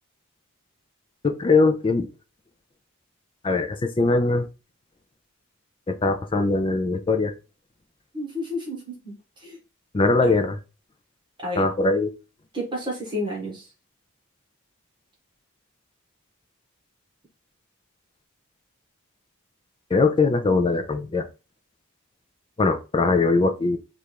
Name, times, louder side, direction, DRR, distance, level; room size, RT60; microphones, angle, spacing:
voice 1, 1.2-2.1 3.4-4.5 5.9-7.3 9.9-10.6 11.6-12.1 19.9-21.3 22.6-23.8, left 3 dB, 25° left, 7 dB, 0.4 m, -21 dB
voice 2, 8.1-9.6 10.2-10.3 11.4-11.7 12.5-13.7, left 1 dB, 20° right, -2 dB, 1.3 m, -31 dB
3.3 x 2.5 x 4.4 m, 0.31 s
head